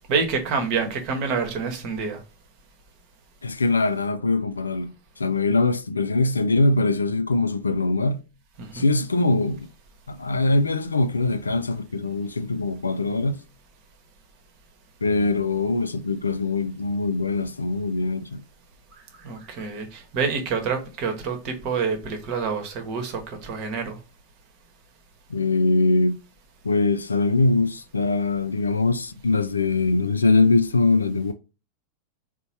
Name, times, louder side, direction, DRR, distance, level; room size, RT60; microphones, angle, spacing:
voice 1, 0.1-2.2 8.6-8.9 19.2-24.0, right 5 dB, 40° right, 1.0 m, -27 dB
voice 2, 3.4-8.2 8.7-9.7 10.1-13.4 15.0-18.4 25.3-26.2 26.6-31.3, left 3 dB, 75° left, 0.3 m, -22 dB
3.9 x 2.2 x 4.4 m
figure-of-eight pair, 90°, 0 cm